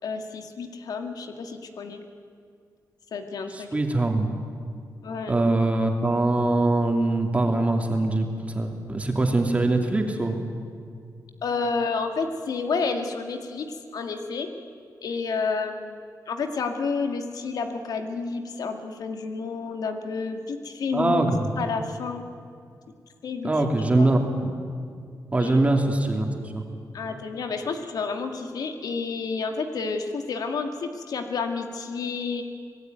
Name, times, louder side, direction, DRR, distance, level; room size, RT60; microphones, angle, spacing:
voice 1, 0.0-2.0 3.1-3.7 5.0-5.4 11.4-14.5 15.0-21.3 21.6-22.2 23.2-23.6 24.0-24.1 25.4-25.7 26.9-32.4, left 4 dB, 75° left, 5 dB, 2.1 m, -30 dB
voice 2, 3.5-4.3 5.3-10.4 20.9-21.4 23.4-24.2 25.3-26.6, right 2 dB, 20° right, 3 dB, 2.9 m, -23 dB
25.5 x 19.0 x 9.5 m, 2.2 s
wide cardioid pair, 125°, 7 cm